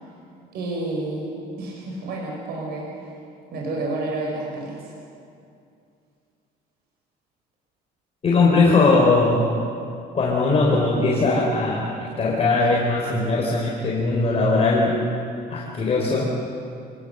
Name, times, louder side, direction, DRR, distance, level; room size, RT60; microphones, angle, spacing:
voice 1, 0.5-3.1 3.5-4.9, right 2 dB, 70° right, -2 dB, 5.5 m, -30 dB
voice 2, 8.2-9.5 10.1-15.0 15.5-16.3, left 3 dB, 35° left, -3 dB, 4.5 m, -20 dB
28.0 x 19.5 x 7.0 m, 2.5 s
cardioid pair, 110°, 17 cm